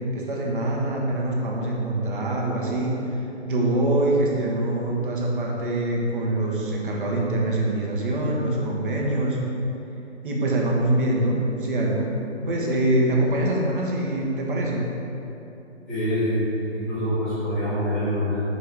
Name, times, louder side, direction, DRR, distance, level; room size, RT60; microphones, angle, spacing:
voice 1, 0.1-3.2 3.5-9.4 10.2-12.1 12.5-14.9, right 1 dB, 45° right, -2 dB, 1.1 m, -24 dB
voice 2, 15.9-16.4 16.7-18.4, equal, ahead, -20 dB, 0.5 m, -25 dB
5.4 x 3.4 x 5.4 m, 3.0 s
figure-of-eight pair, 150°, 36 cm